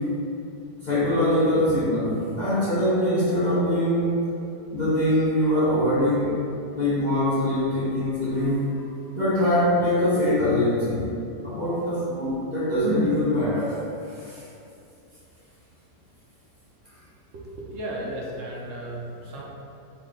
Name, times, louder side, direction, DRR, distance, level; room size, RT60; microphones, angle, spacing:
voice 1, 0.8-4.3 4.7-6.3 6.7-8.7 9.1-11.1 11.4-13.8 14.2-14.4, left 1 dB, 70° left, -11 dB, 0.4 m, -23 dB
voice 2, 17.3-19.4, right 1 dB, 65° right, -4 dB, 0.7 m, -35 dB
3.8 x 2.1 x 3.7 m, 2.7 s
omnidirectional pair, 1.8 m